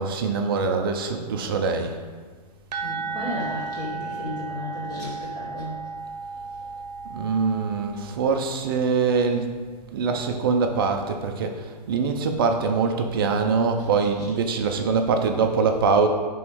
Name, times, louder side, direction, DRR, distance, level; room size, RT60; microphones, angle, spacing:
voice 1, 0.0-1.9 7.1-9.5 9.9-16.1, right 5 dB, 35° right, 5 dB, 0.4 m, -23 dB
sound 1, 2.7-8.3, right 4 dB, 90° right, 0.6 m, -34 dB
voice 2, 2.8-5.8 14.1-14.2, left 1 dB, 20° left, -7 dB, 1.2 m, -34 dB
4.4 x 3.0 x 3.5 m, 1.5 s
hypercardioid pair, 165°, 21 cm